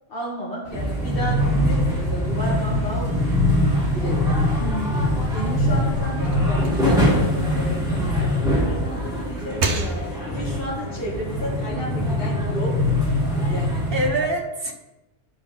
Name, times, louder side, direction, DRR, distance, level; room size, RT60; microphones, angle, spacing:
voice 1, 0.1-3.3 3.9-4.4 5.3-9.6 10.3-12.8 13.5-13.8, equal, 55° left, -6 dB, 2.3 m, -32 dB
sound 1, 0.6-6.5, left 2 dB, 20° right, 0.8 m, -40 dB
sound 2, 0.7-14.1, left 1 dB, 5° right, 2.4 m, -22 dB
voice 2, 4.6-5.3 9.5-9.9 13.9-14.7, right 1 dB, 60° right, 2 dB, 1.4 m, -27 dB
sound 3, 5.2-8.3 8.7-10.5, right 2 dB, 80° right, 1.2 m, -32 dB
10.5 x 5.5 x 3.5 m, 0.95 s
omnidirectional pair, 1.1 m